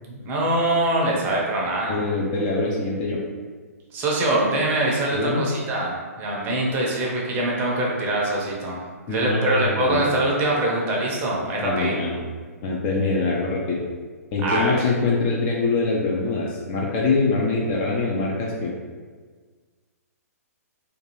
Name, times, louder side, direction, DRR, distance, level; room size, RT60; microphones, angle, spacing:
voice 1, 0.0-2.0 3.9-8.8 9.1-11.9 14.4-14.7, right 1 dB, 20° right, -3 dB, 0.6 m, -23 dB
voice 2, 1.9-3.2 5.1-5.4 9.1-10.1 11.6-12.2 12.6-13.8 14.3-18.7, left 3 dB, 25° left, -2 dB, 0.4 m, -24 dB
2.5 x 2.3 x 2.9 m, 1.5 s
figure-of-eight pair, 120°, 9 cm